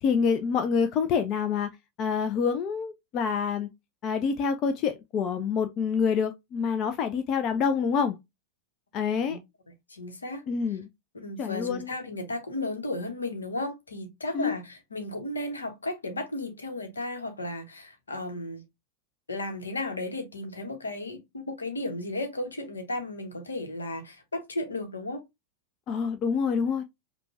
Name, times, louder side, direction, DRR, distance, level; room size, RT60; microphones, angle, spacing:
voice 1, 0.0-1.7 2.0-3.7 4.0-8.2 8.9-9.4 10.5-10.9 11.4-11.9 14.3-14.5 25.9-26.8, left 6 dB, 35° left, 0.4 m, -27 dB
voice 2, 9.9-10.4 11.1-18.6 19.3-25.2, left 2 dB, 75° left, 0.9 m, -34 dB
5.2 x 2.2 x 2.6 m
figure-of-eight pair, 90°, 0 cm